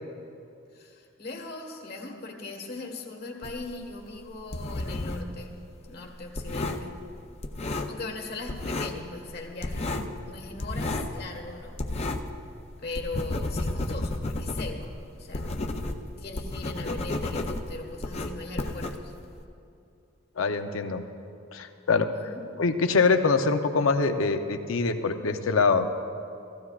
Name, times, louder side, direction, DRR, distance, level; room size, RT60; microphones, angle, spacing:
voice 1, 0.7-5.6 5.9-6.9 7.9-11.8 12.8-15.5 16.2-19.1 22.1-22.4, left 3 dB, 50° left, 2 dB, 1.4 m, -39 dB
sound 1, 3.4-5.4 5.6-8.2 8.5-9.1 9.3-12.4 12.7-19.4, left 2 dB, 30° left, 0.5 m, -32 dB
voice 2, 20.4-21.0 21.5-22.1 22.6-25.9, left 4 dB, 80° left, 7 dB, 0.7 m, -24 dB
16.0 x 15.0 x 2.4 m, 2.6 s
head